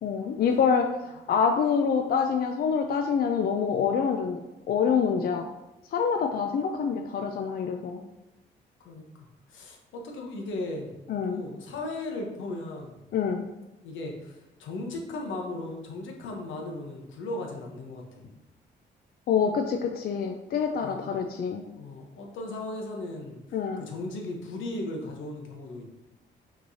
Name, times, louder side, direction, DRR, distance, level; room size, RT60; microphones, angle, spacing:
voice 1, 0.0-4.4 4.7-5.5 5.9-8.0 11.1-11.4 13.1-13.4 19.3-21.6 23.5-23.8, left 6 dB, 50° left, 4 dB, 0.4 m, -26 dB
voice 2, 9.5-10.9 11.2-13.0 13.8-18.3 20.7-21.1 21.6-25.8, left 2 dB, 75° left, 1 dB, 0.9 m, -37 dB
5.8 x 3.1 x 2.7 m, 0.98 s
cardioid pair, 90°, 20 cm